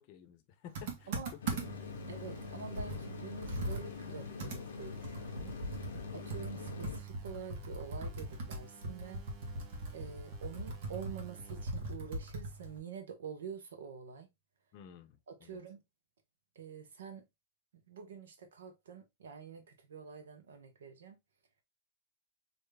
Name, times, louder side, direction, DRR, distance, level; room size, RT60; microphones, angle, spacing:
voice 1, 0.0-2.0 14.7-15.6, left 9 dB, 45° left, 0.6 m, -54 dB
Computer keyboard, 0.7-1.9 2.4-2.5 2.8-6.0 6.3-12.8, right 2 dB, 60° right, 1.2 m, -40 dB
sound 1, 1.4-7.0, left 6 dB, 90° left, 0.5 m, -44 dB
sound 2, 1.6-11.6, right 12 dB, 35° right, 0.9 m, -53 dB
voice 2, 2.1-5.5 6.1-9.2 9.9-14.3 15.3-15.8 16.5-17.3 17.9-21.2, right 6 dB, 85° right, 1.0 m, -47 dB
3.2 x 2.7 x 3.4 m
hypercardioid pair, 135°, 0 cm